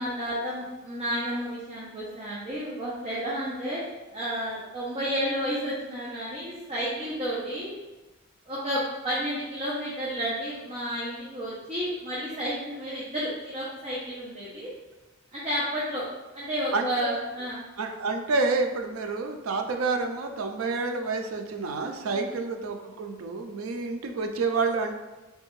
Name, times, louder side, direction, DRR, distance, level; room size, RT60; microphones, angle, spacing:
voice 1, 0.0-3.8 4.1-7.7 8.4-14.7 15.3-16.0 16.3-17.6 21.8-22.3, equal, 30° right, -8 dB, 0.7 m, -31 dB
voice 2, 16.7-17.1 17.8-24.9, right 3 dB, 80° right, 5 dB, 0.4 m, -29 dB
3.4 x 3.1 x 3.1 m, 1.1 s
head